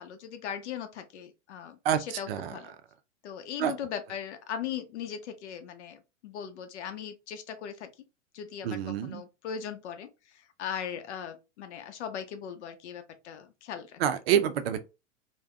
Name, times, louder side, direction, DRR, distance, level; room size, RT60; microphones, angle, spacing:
voice 1, 0.0-2.7 3.2-7.9 8.3-10.1 10.6-14.0, left 8 dB, 65° left, 0.7 m, -39 dB
voice 2, 8.6-9.2 14.0-14.8, right 9 dB, 50° right, 0.5 m, -27 dB
3.4 x 2.2 x 2.2 m
hypercardioid pair, 110°, 38 cm